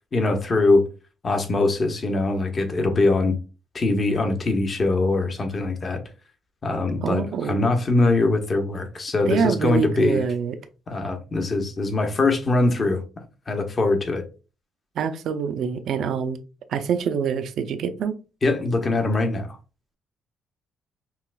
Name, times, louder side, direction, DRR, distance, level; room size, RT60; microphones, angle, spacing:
voice 1, 0.1-0.8 1.2-3.4 3.7-6.0 6.6-10.2 10.9-13.0 13.5-14.2 18.4-19.6, left 2 dB, 40° left, 0.9 m, -22 dB
voice 2, 7.0-7.7 9.2-10.6 15.0-16.4 16.7-18.2, right 6 dB, 70° right, 0.5 m, -25 dB
5.6 x 2.4 x 2.2 m
cardioid pair, 90°, 0 cm